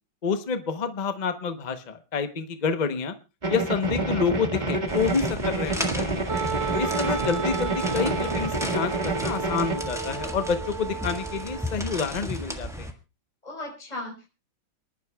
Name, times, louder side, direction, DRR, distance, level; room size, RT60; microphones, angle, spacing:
voice 1, 0.2-3.1 3.5-6.3 6.8-12.9, left 5 dB, 45° left, 9 dB, 0.5 m, -28 dB
sound 1, 3.4-9.8, right 2 dB, 25° right, 1.6 m, -28 dB
sound 2, 4.9-12.9, equal, ahead, 1.3 m, -35 dB
Wind instrument woodwind instrument, 6.3-11.9, right 7 dB, 45° right, 0.9 m, -33 dB
voice 2, 6.6-7.2 13.4-14.3, left 2 dB, 20° left, -1 dB, 4.4 m, -38 dB
28.5 x 11.0 x 2.3 m, 0.28 s
omnidirectional pair, 2.1 m